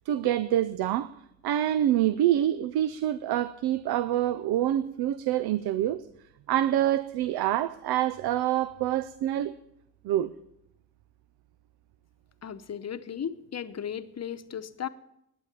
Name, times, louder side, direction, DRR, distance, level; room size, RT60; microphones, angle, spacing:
voice 1, 0.1-1.1 1.4-6.1 6.5-9.5 10.0-10.3, right 12 dB, 90° right, 0.5 m, -26 dB
voice 2, 12.4-14.9, left 8 dB, 45° left, 0.9 m, -36 dB
11.5 x 8.7 x 8.7 m
cardioid pair, 70°, 37 cm